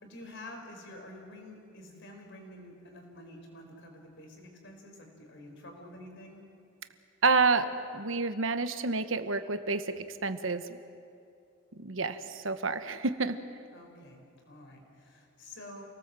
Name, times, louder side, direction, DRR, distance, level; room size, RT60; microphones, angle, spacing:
voice 1, 0.0-6.4 13.7-15.8, left 1 dB, 60° left, 3 dB, 4.6 m, -48 dB
voice 2, 7.2-10.8 11.7-13.4, right 4 dB, 75° right, 10 dB, 1.2 m, -29 dB
29.0 x 18.5 x 7.6 m, 2.5 s
head